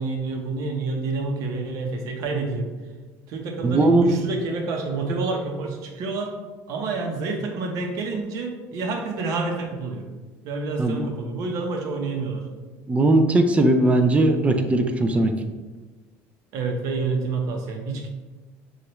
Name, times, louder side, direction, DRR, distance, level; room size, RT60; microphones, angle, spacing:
voice 1, 0.0-2.7 3.3-6.4 6.7-10.1 10.4-12.5 16.5-18.1, right 3 dB, 65° right, 3 dB, 0.8 m, -28 dB
voice 2, 3.6-4.1 10.8-11.0 12.9-15.3, right 2 dB, 20° right, 6 dB, 0.4 m, -19 dB
6.3 x 2.4 x 3.0 m, 1.3 s
cardioid pair, 115°, 6 cm